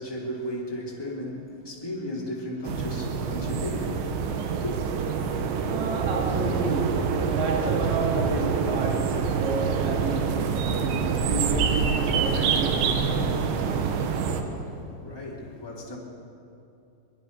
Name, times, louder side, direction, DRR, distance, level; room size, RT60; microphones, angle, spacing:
voice 1, 0.0-4.9 14.3-16.0, left 1 dB, 5° left, 2.0 m, -35 dB
sound 1, 2.6-14.4, right 6 dB, 90° right, 3.5 m, -26 dB
voice 2, 5.7-13.2, right 3 dB, 50° right, 3.3 m, -31 dB
22.5 x 22.0 x 5.4 m
omnidirectional pair, 5.0 m